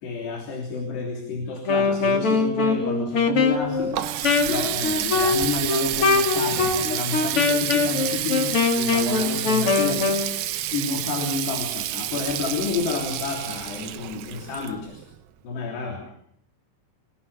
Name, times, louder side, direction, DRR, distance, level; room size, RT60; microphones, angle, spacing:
voice 1, 0.0-4.0 4.5-10.2 10.7-15.0 15.4-16.0, left 4 dB, 60° left, 2 dB, 5.3 m, -30 dB
Wind instrument woodwind instrument, 1.6-10.3, left 4 dB, 35° left, 2.6 m, -23 dB
Water tap faucet, 3.5-15.2, right 13 dB, 75° right, 2.1 m, -29 dB
27.0 x 18.0 x 7.1 m, 0.68 s
omnidirectional pair, 5.5 m